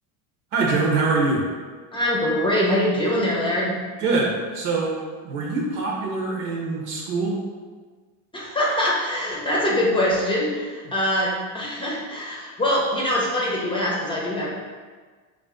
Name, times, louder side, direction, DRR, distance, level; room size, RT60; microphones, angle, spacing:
voice 1, 0.5-1.4 4.0-4.9 5.2-7.4, right 3 dB, 65° right, -2 dB, 1.1 m, -23 dB
voice 2, 1.9-3.7 8.3-14.5, left 1 dB, 10° left, -4 dB, 0.8 m, -23 dB
3.4 x 2.6 x 3.7 m, 1.5 s
supercardioid pair, 100°, 41 cm